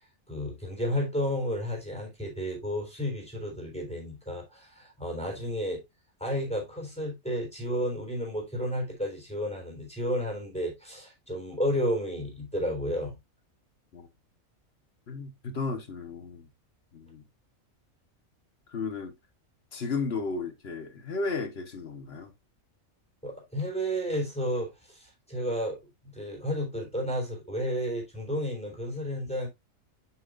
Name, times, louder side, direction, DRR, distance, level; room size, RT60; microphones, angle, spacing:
voice 1, 0.3-5.8 6.2-13.2 23.2-25.8 26.0-29.5, equal, 5° left, 3.8 m, -32 dB
voice 2, 15.1-16.5 16.9-17.2 18.7-19.1 19.7-22.3, left 4 dB, 50° left, 1.4 m, -34 dB
7.3 x 7.3 x 2.5 m
omnidirectional pair, 1.4 m